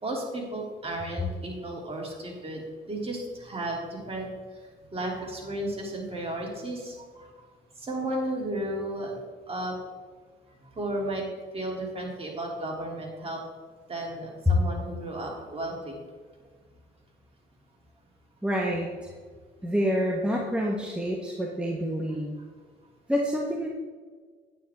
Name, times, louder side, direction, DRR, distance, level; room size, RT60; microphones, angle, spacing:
voice 1, 0.0-4.3 4.9-7.5 7.8-9.1 9.5-9.7 10.7-11.2 11.5-13.4 13.9-16.0, right 1 dB, 30° right, -2 dB, 2.9 m, -33 dB
voice 2, 18.4-18.9 19.6-22.3 23.1-23.7, equal, 5° right, -2 dB, 1.3 m, -27 dB
9.5 x 9.2 x 3.6 m, 1.5 s
cardioid pair, 90°, 20 cm